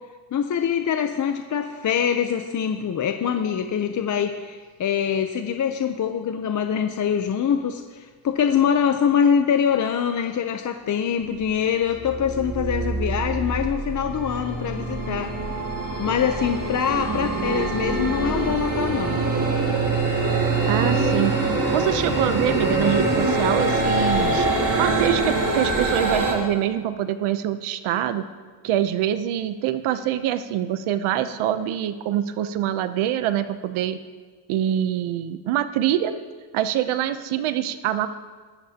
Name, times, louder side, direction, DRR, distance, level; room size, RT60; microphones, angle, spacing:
voice 1, 0.3-15.6 16.0-19.2, left 8 dB, 40° left, 6 dB, 0.7 m, -24 dB
sound 1, 11.3-11.5 11.9-26.3, right 2 dB, 40° right, 3.1 m, -24 dB
voice 2, 20.7-21.3 21.7-24.5 24.8-28.2 28.6-34.0 34.5-36.1 36.5-38.1, right 11 dB, 75° right, 11 dB, 0.8 m, -24 dB
22.0 x 11.5 x 2.9 m, 1.5 s
cardioid pair, 120°, 49 cm